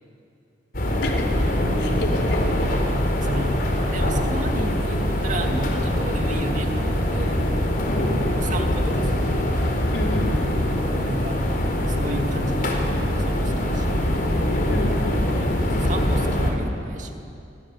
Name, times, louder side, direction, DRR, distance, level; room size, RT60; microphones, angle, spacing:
sound 1, 0.7-16.5, left 1 dB, 55° left, 4.6 m, -23 dB
voice 1, 1.0-1.5 1.8-2.4 7.9-8.2 9.9-10.4 14.7-15.3, left 1 dB, 85° left, 0 dB, 4.4 m, -31 dB
voice 2, 3.2-3.6 3.9-7.4 8.4-9.3 11.0-11.4 11.9-13.9 15.4-17.2, right 1 dB, 45° right, 4 dB, 2.4 m, -32 dB
28.5 x 24.0 x 8.5 m, 2.6 s
head